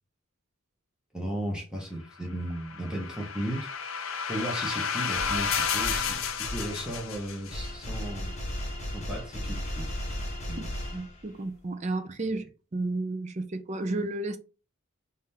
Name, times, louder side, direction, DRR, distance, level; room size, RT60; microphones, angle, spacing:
voice 1, 1.1-3.7 4.3-8.4 8.9-9.9 10.5-10.7, right 1 dB, 5° right, 0.9 m, -35 dB
sound 1, 2.4-7.7, left 6 dB, 70° left, 0.6 m, -32 dB
sound 2, 5.1-11.5, left 1 dB, 30° left, 1.1 m, -36 dB
voice 2, 10.9-12.4 12.7-14.4, right 2 dB, 30° right, 0.4 m, -32 dB
3.7 x 2.7 x 3.4 m
head